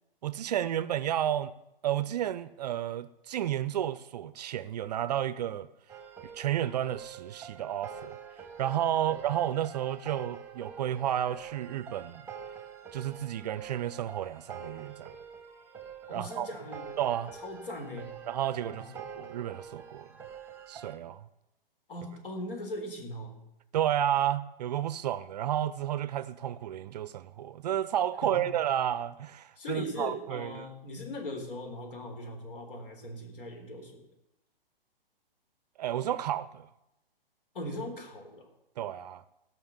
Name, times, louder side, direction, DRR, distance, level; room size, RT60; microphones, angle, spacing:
voice 1, 0.2-1.5 1.8-5.7 6.3-8.2 8.6-12.2 12.9-15.1 16.1-16.5 17.0-17.3 18.3-20.1 20.7-21.2 23.7-30.7 35.8-36.7 38.8-39.2, right 11 dB, 45° right, 0.6 m, -31 dB
sound 1, 5.9-21.0, right 7 dB, 5° right, 1.2 m, -46 dB
voice 2, 16.1-16.9 17.3-18.2 18.6-18.9 21.9-23.4 28.2-28.5 29.6-34.1 37.5-38.5, left 1 dB, 65° left, 3.9 m, -39 dB
16.5 x 6.0 x 7.3 m
hypercardioid pair, 140°, 29 cm